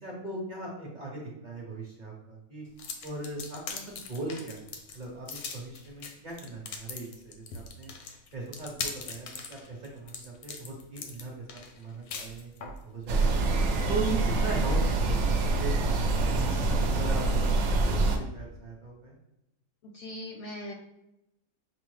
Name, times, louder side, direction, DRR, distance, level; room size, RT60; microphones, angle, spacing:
voice 1, 0.0-2.6 3.0-4.6 4.9-7.9 8.3-13.3 13.9-15.7 16.1-19.2, right 2 dB, 40° right, -4 dB, 0.8 m, -39 dB
sound 1, 2.8-12.8, left 5 dB, 85° left, 1.1 m, -41 dB
sound 2, 13.1-18.2, right 3 dB, 70° right, 0.9 m, -25 dB
voice 2, 19.8-20.7, left 1 dB, 65° left, 1 dB, 0.8 m, -40 dB
6.0 x 2.0 x 3.1 m, 0.87 s
omnidirectional pair, 1.5 m